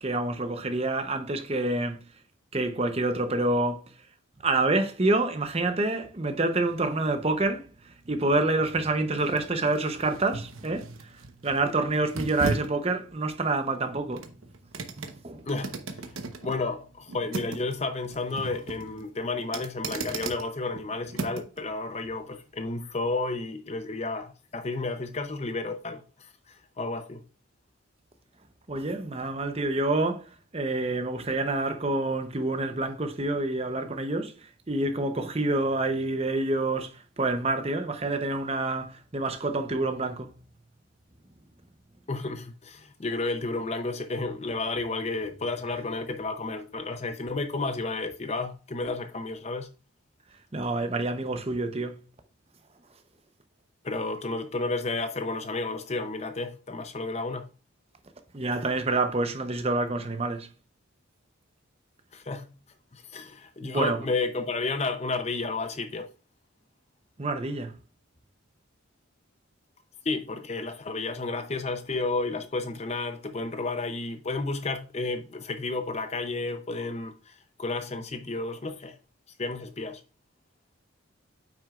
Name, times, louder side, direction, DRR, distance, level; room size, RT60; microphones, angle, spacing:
voice 1, 0.0-2.0 2.5-3.9 4.4-7.7 8.1-10.9 11.4-14.3 15.2-15.4 28.7-30.3 30.5-34.3 34.7-40.3 50.5-52.0 58.3-60.5 63.6-64.0 67.2-67.7, right 2 dB, 30° right, 0.8 m, -27 dB
sound 1, 6.9-21.6 22.0-22.2, right 3 dB, 80° right, 1.0 m, -38 dB
voice 2, 15.5-15.8 16.4-27.2 42.1-49.7 53.8-57.5 62.1-62.5 62.9-66.1 70.0-79.0 79.4-80.0, left 3 dB, 30° left, 0.6 m, -32 dB
8.6 x 6.1 x 2.4 m
head